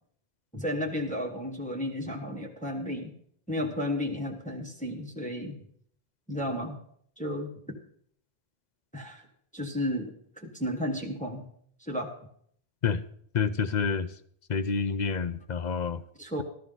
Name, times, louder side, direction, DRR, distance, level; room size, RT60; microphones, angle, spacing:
voice 1, 0.5-3.2 3.5-5.6 6.3-6.8 7.2-7.8 8.9-9.3 9.5-11.5 11.8-12.1 16.2-16.4, left 1 dB, 5° left, 1 dB, 1.4 m, -33 dB
voice 2, 13.3-14.1 14.5-16.0, left 5 dB, 50° left, 13 dB, 0.7 m, -28 dB
14.0 x 13.0 x 3.9 m, 0.64 s
omnidirectional pair, 1.1 m